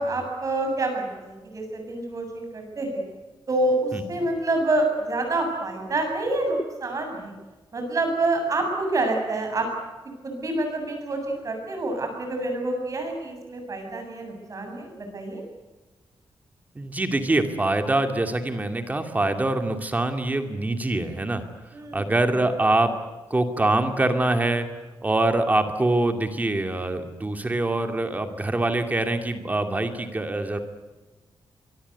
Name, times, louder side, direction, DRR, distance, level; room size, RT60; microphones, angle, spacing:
voice 1, 0.0-3.0 3.5-7.3 7.7-9.7 10.2-15.4 21.7-22.1, right 2 dB, 40° right, 3 dB, 7.8 m, -27 dB
voice 2, 16.8-21.4 21.9-22.9 23.3-24.7 25.0-30.6, right 2 dB, 20° right, 6 dB, 2.4 m, -24 dB
24.0 x 24.0 x 8.2 m, 1.2 s
wide cardioid pair, 170°, 9 cm